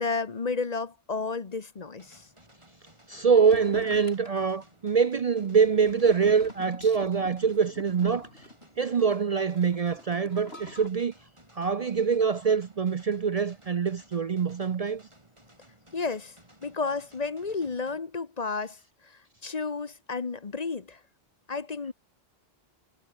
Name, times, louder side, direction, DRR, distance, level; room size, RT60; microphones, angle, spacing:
voice 1, 0.0-2.3 15.9-16.4 16.6-18.8 19.0-21.0 21.5-21.9, left 4 dB, 40° left, 1.1 m, -32 dB
sound 1, 2.0-18.0, right 1 dB, 30° right, 5.9 m, -58 dB
voice 2, 3.1-8.3 8.8-11.1 11.5-15.0, right 6 dB, 45° right, 0.6 m, -24 dB
sound 2, 3.4-10.9, left 1 dB, 85° left, 6.9 m, -46 dB
omnidirectional pair, 1.0 m